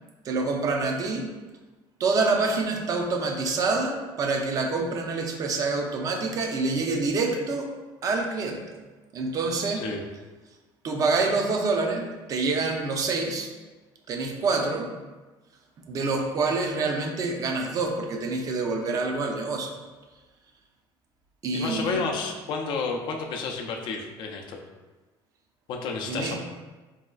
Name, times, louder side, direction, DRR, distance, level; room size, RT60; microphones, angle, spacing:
voice 1, 0.2-1.3 2.0-7.7 8.0-8.8 9.1-9.9 10.8-13.5 14.1-14.9 15.9-19.7 21.4-22.1 26.1-26.3, right 3 dB, 35° right, 2 dB, 0.4 m, -26 dB
voice 2, 21.5-24.6 25.7-26.3, left 4 dB, 55° left, 1 dB, 0.4 m, -31 dB
4.0 x 2.3 x 2.3 m, 1.3 s
cardioid pair, 145°, 10 cm